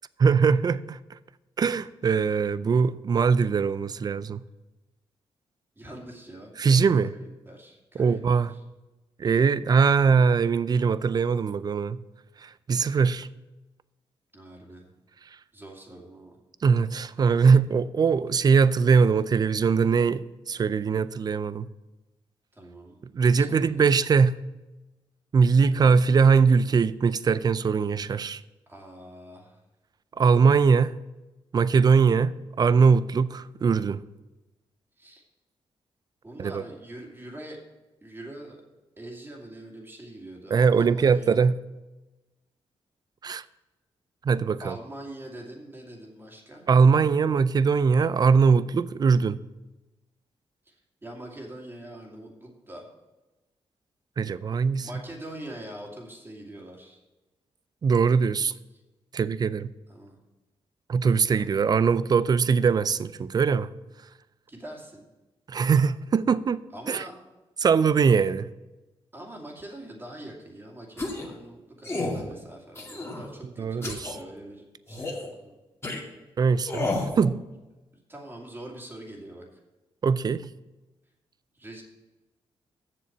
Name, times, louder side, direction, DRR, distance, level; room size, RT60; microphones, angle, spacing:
voice 1, 0.2-1.0 1.6-4.4 6.6-7.1 8.0-8.5 9.2-12.0 12.4-13.3 16.6-21.7 23.1-24.4 25.3-28.4 30.2-30.9 31.5-34.0 36.4-36.6 40.5-41.6 43.2-43.4 44.2-44.7 46.7-49.4 54.2-54.9 57.8-58.5 59.1-59.7 60.9-63.7 65.5-66.6 66.9-67.0 67.6-68.5 73.6-74.2 76.4-77.4 80.0-80.5, right 5 dB, 40° right, 0.4 m, -21 dB
voice 2, 5.8-6.8 7.1-8.2 8.5-8.6 14.3-14.9 15.5-16.4 22.5-23.0 23.4-24.0 25.6-25.9 28.7-29.6 35.0-35.2 36.2-37.6 38.0-38.6 39.0-41.5 44.6-46.7 50.7-50.8 51.0-52.9 54.8-57.0 58.7-58.8 59.9-60.2 61.3-61.6 64.5-65.1 66.7-67.2 69.1-75.5 78.1-79.6 81.5-81.8, right 1 dB, 20° right, 2.5 m, -43 dB
sound 1, 71.0-71.3 71.8-72.2 72.8-73.3 73.8-74.1 74.9-75.3 75.8-76.0 76.6-77.1, left 2 dB, 25° left, 2.3 m, -31 dB
7.5 x 6.8 x 7.2 m
cardioid pair, 80°, 10 cm